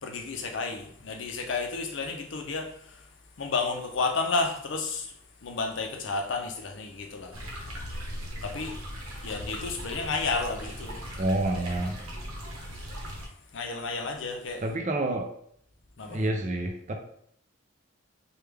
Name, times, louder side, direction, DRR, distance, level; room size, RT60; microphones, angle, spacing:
voice 1, 0.0-2.7 3.4-5.1 5.4-7.3 8.4-8.8 9.2-11.0 13.5-14.6 16.0-16.2, left 4 dB, 60° left, 0.5 m, -31 dB
sound 1, 7.3-13.3, equal, 85° right, 0.9 m, -38 dB
voice 2, 11.2-12.0 14.6-15.3 16.0-16.9, right 1 dB, 35° right, 0.4 m, -28 dB
3.2 x 2.3 x 3.3 m
head